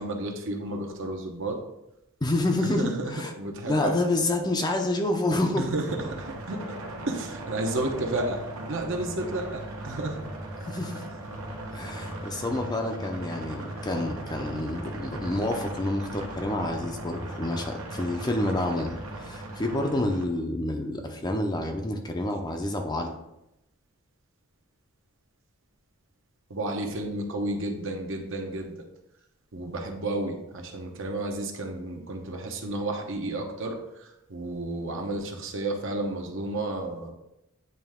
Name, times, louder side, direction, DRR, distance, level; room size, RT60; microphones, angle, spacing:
voice 1, 0.0-1.6 2.6-3.9 5.6-5.8 6.2-6.8 7.1-8.4 8.7-10.2 26.5-28.7 29.5-37.1, right 2 dB, 60° right, 2 dB, 0.9 m, -32 dB
voice 2, 2.2-3.3 3.6-5.7 10.6-11.0 11.7-23.1, left 1 dB, 20° left, 4 dB, 0.5 m, -28 dB
sound 1, 5.9-20.3, right 1 dB, 80° right, 1.0 m, -38 dB
9.0 x 3.2 x 3.6 m, 0.87 s
head